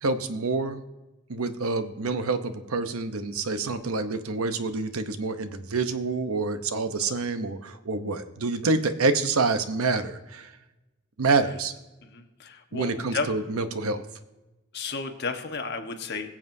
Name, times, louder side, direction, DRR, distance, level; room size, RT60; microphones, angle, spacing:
voice 1, 0.0-0.8 1.3-10.5 11.2-11.7 12.7-14.0, right 3 dB, 80° right, 10 dB, 0.8 m, -27 dB
voice 2, 12.0-13.3 14.7-16.3, left 4 dB, 50° left, 5 dB, 1.2 m, -33 dB
21.5 x 7.5 x 2.7 m, 1.0 s
head